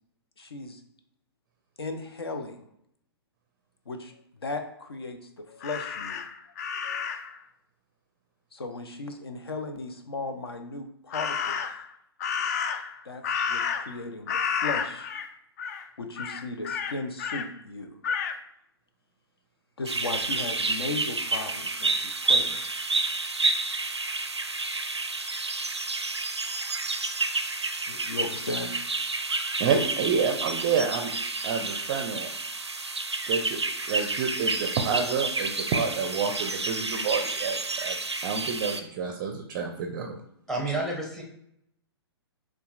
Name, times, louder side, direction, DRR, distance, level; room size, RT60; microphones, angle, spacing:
voice 1, 0.4-0.8 1.8-2.6 3.9-4.1 4.4-6.2 8.5-11.6 13.0-15.1 16.0-18.0 19.8-22.6 27.9-28.7, left 3 dB, 65° left, 7 dB, 0.7 m, -36 dB
Crow, 5.6-7.4 11.1-11.9 12.2-14.0 14.3-15.3 15.6-15.8 16.2-17.5 18.0-18.4, left 6 dB, 40° left, 0.4 m, -31 dB
sound 1, 19.9-38.8, right 3 dB, 90° right, 0.4 m, -30 dB
voice 2, 29.6-31.1 31.4-32.3 33.3-33.6 33.9-37.9 38.2-40.2, right 5 dB, 30° right, 4 dB, 0.5 m, -28 dB
voice 3, 40.5-41.2, right 2 dB, 5° left, -1 dB, 0.8 m, -29 dB
6.7 x 2.4 x 2.4 m, 0.74 s
figure-of-eight pair, 115°, 14 cm